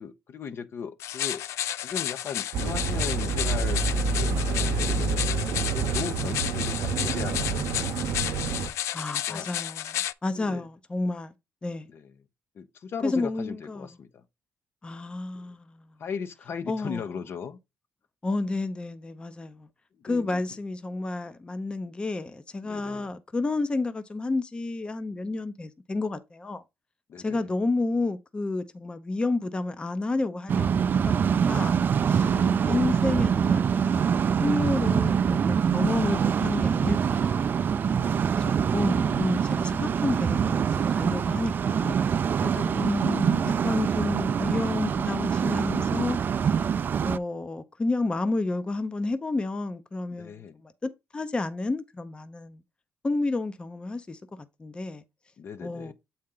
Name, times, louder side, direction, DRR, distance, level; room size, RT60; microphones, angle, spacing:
voice 1, 0.0-1.4 1.8-5.1 5.7-7.7 9.3-9.5 10.3-10.7 11.9-12.1 12.6-14.2 16.0-17.6 20.1-20.4 22.6-23.1 27.1-27.5 32.2-32.7 37.8-38.2 42.3-42.9 50.1-50.6 55.4-55.9, left 6 dB, 55° left, 0.7 m, -37 dB
sound 1, 1.0-10.1, left 12 dB, 85° left, 0.3 m, -32 dB
sound 2, 2.5-8.7, right 4 dB, 80° right, 0.7 m, -28 dB
voice 2, 8.9-11.3 11.6-11.9 13.0-13.9 14.8-15.9 16.7-17.1 18.2-19.7 20.0-26.6 27.2-31.1 31.5-31.8 32.1-32.3 32.7-37.6 38.4-42.0 42.7-46.2 46.4-46.5 47.0-52.6 53.0-55.0 55.6-55.9, left 2 dB, 20° left, 0.6 m, -30 dB
sound 3, 30.5-47.2, right 7 dB, 45° right, 0.3 m, -25 dB
7.6 x 4.3 x 3.8 m
cardioid pair, 110°, 5 cm